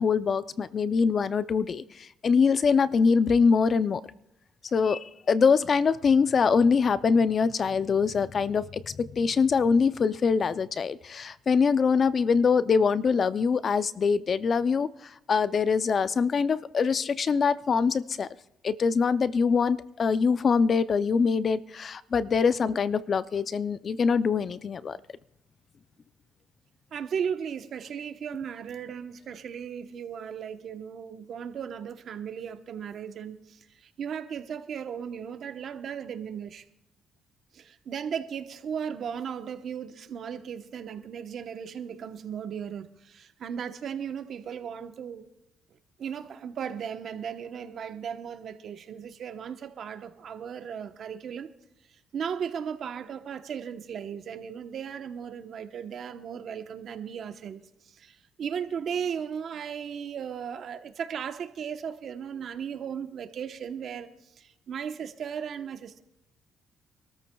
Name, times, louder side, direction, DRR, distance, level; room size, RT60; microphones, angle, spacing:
voice 1, 0.0-4.0 4.7-18.3 18.6-25.0, left 5 dB, 45° left, 0.5 m, -24 dB
voice 2, 26.9-36.6 37.5-45.3 46.0-51.5 52.1-66.0, right 7 dB, 65° right, 0.9 m, -36 dB
25.5 x 13.5 x 2.3 m
cardioid pair, 90°, 0 cm